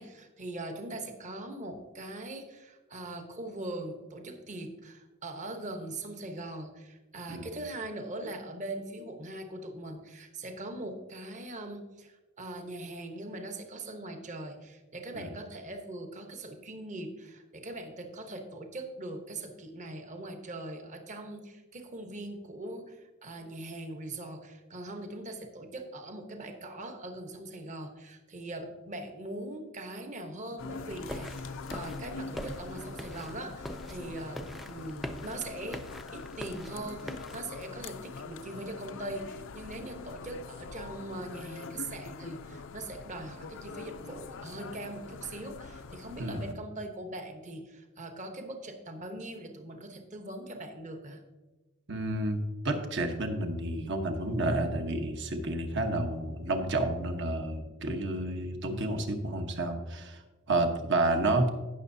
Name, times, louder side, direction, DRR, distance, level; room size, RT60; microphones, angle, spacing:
voice 1, 0.0-35.9 36.1-51.2, right 2 dB, 35° right, 5 dB, 1.0 m, -41 dB
sound 1, 30.6-46.5, left 4 dB, 65° left, 0.5 m, -44 dB
sound 2, 31.1-37.4, equal, ahead, 0.4 m, -43 dB
voice 2, 51.9-52.4 52.6-61.5, right 2 dB, 60° right, 5 dB, 1.1 m, -30 dB
16.5 x 6.3 x 2.7 m, 1.2 s
head